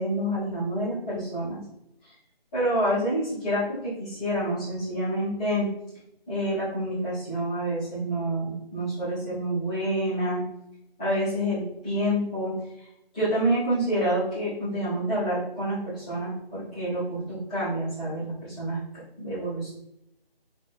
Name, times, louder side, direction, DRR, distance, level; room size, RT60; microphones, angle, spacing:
voice 1, 0.0-1.6 2.0-2.1 2.5-5.7 6.3-10.4 11.0-12.9 13.1-18.8 19.2-19.7, right 1 dB, 5° left, -18 dB, 1.5 m, -28 dB
4.7 x 4.3 x 2.3 m, 0.80 s
figure-of-eight pair, 175°, 30 cm